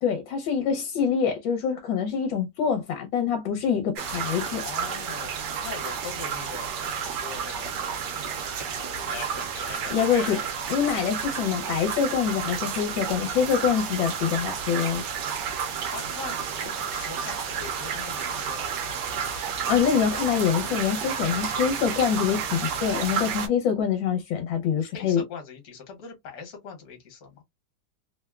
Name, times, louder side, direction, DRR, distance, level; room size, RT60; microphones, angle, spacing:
voice 1, 0.0-4.6 9.9-10.4 10.7-15.0 19.7-25.2, left 7 dB, 75° left, 1.4 m, -25 dB
sound 1, 3.9-23.5, right 7 dB, 70° right, 1.2 m, -31 dB
voice 2, 4.6-7.8 8.2-10.5 10.9-11.0 15.8-18.7 24.8-27.4, left 5 dB, 55° left, 1.4 m, -41 dB
3.5 x 2.1 x 2.3 m
omnidirectional pair, 2.2 m